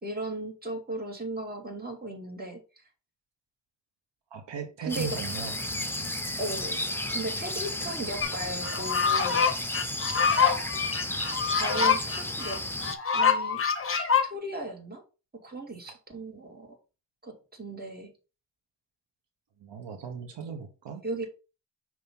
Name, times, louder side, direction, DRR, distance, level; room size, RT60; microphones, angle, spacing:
voice 1, 0.0-2.6 4.8-5.2 6.4-6.8 7.1-9.5 11.5-12.6 13.1-13.6 14.2-15.0 15.4-16.8 17.2-18.1 21.0-21.2, right 2 dB, 20° right, 1 dB, 2.2 m, -36 dB
voice 2, 4.3-5.5 19.6-21.0, right 7 dB, 75° right, 4 dB, 1.1 m, -37 dB
sound 1, 4.9-13.0, left 1 dB, 5° left, 0.8 m, -33 dB
sound 2, 8.2-8.3 8.6-14.3, left 6 dB, 30° left, 0.9 m, -25 dB
5.7 x 3.1 x 5.3 m, 0.32 s
cardioid pair, 85°, 43 cm